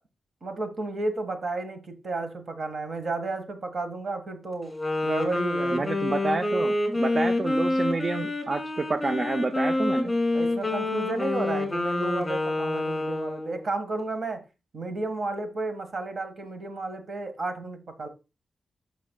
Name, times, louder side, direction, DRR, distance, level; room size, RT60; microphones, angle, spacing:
voice 1, 0.4-4.7 5.0-5.9 10.3-14.4 14.7-18.1, right 2 dB, 50° right, 1.5 m, -32 dB
Wind instrument woodwind instrument, 4.7-13.6, left 2 dB, 20° left, 2.2 m, -27 dB
voice 2, 5.7-10.1, right 3 dB, 35° right, 0.4 m, -29 dB
13.5 x 5.2 x 2.2 m
wide cardioid pair, 130°, 0 cm